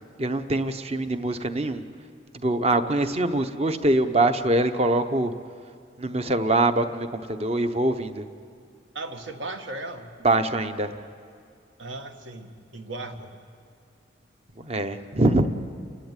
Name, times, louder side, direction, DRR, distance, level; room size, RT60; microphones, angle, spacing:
voice 1, 0.2-1.8 2.3-5.3 6.0-8.3 10.2-10.9 14.6-15.5, right 2 dB, 30° right, 9 dB, 0.8 m, -23 dB
voice 2, 8.9-10.1 11.8-13.3, right 2 dB, 75° right, 5 dB, 1.6 m, -36 dB
29.5 x 11.5 x 9.0 m, 2.3 s
head